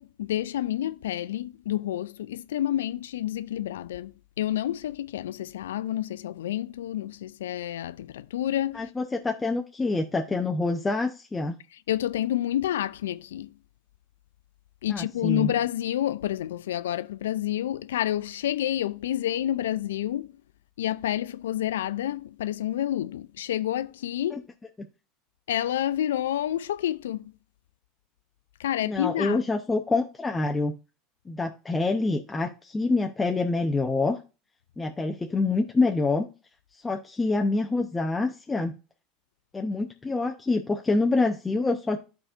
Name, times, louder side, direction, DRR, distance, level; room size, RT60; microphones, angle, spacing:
voice 1, 0.0-8.9 11.9-13.5 14.8-20.3 20.8-24.5 25.5-27.3 28.6-29.4, left 12 dB, 90° left, 0.3 m, -29 dB
voice 2, 8.7-11.6 14.9-15.5 24.3-24.4 28.8-30.7 31.3-34.2 34.8-36.3 36.8-38.8 39.5-42.0, left 3 dB, 15° left, 0.8 m, -26 dB
12.5 x 4.2 x 2.5 m
hypercardioid pair, 95°, 0 cm